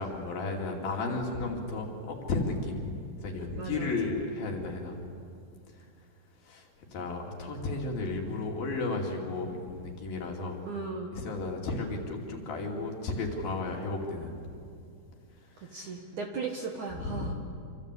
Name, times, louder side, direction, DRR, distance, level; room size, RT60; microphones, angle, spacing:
voice 1, 0.0-2.9 3.2-5.0 6.5-10.6 11.1-14.5 15.7-15.9 17.0-17.3, left 3 dB, 55° left, 0 dB, 4.3 m, -33 dB
voice 2, 3.6-3.9 10.7-11.1 15.6-17.3, right 4 dB, 55° right, 2 dB, 2.3 m, -36 dB
27.5 x 26.0 x 8.3 m, 2.4 s
omnidirectional pair, 5.3 m